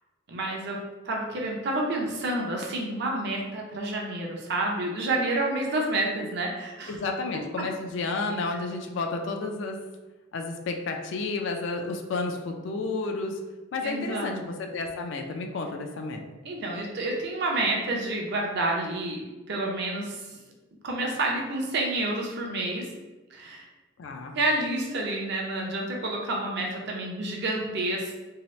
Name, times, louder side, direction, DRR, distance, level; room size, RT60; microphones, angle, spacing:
voice 1, 0.3-0.8 1.0-6.9 13.8-14.4 16.4-20.2 20.8-22.9 23.3-23.7 24.4-28.1, right 2 dB, 55° right, -1 dB, 0.5 m, -29 dB
voice 2, 6.9-9.8 10.3-13.4 13.7-16.2 24.0-24.4, left 3 dB, 65° left, 3 dB, 0.3 m, -31 dB
2.7 x 2.0 x 3.0 m, 1.2 s
head